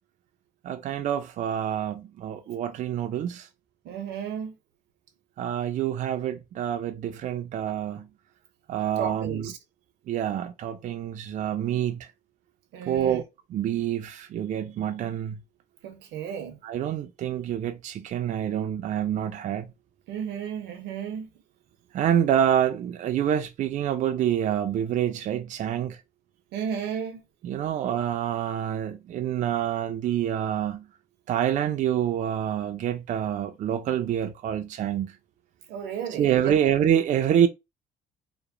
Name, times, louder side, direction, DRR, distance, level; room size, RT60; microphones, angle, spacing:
voice 1, 0.6-3.5 5.4-8.1 8.7-9.5 10.1-12.1 12.9-13.2 13.5-15.4 16.6-19.7 21.9-26.0 27.4-30.9 31.3-35.1 36.2-37.5, right 10 dB, 50° right, 0.4 m, -27 dB
voice 2, 3.8-4.5 9.0-9.6 12.7-13.2 15.8-16.6 20.1-21.3 26.5-27.2 35.7-36.6, right 8 dB, 85° right, 0.7 m, -33 dB
2.9 x 2.0 x 2.4 m
cardioid pair, 110°, 17 cm